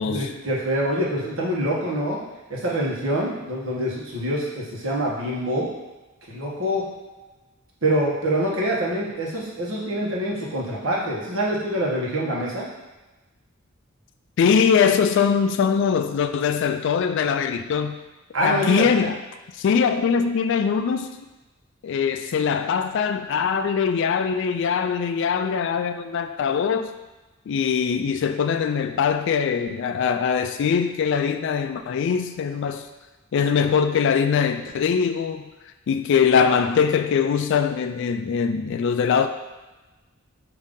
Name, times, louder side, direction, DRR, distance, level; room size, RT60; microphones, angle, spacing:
voice 1, 0.0-2.2 2.5-5.7 6.3-6.8 7.8-12.7 18.3-18.9, right 1 dB, 70° right, -4 dB, 1.1 m, -25 dB
voice 2, 14.4-18.0 18.4-19.2 19.6-21.2 21.8-26.9 27.5-32.9 33.3-35.5 35.9-39.3, left 6 dB, 60° left, 8 dB, 0.3 m, -22 dB
5.1 x 2.7 x 3.6 m, 1.1 s
head